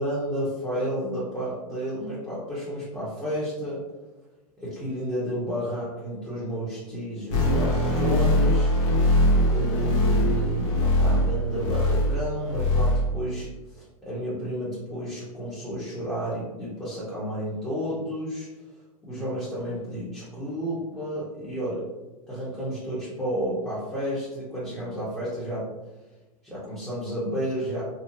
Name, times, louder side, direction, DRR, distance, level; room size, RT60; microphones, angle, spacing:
voice 1, 0.0-3.8 4.6-8.7 9.5-18.5 19.0-21.8 22.3-25.7 26.4-27.8, equal, 5° left, -12 dB, 1.0 m, -31 dB
sound 1, 7.3-12.2 12.4-13.1 13.4-13.5, left 1 dB, 55° left, 1.1 m, -22 dB
2.8 x 2.4 x 2.5 m, 1.1 s
hypercardioid pair, 115°, 19 cm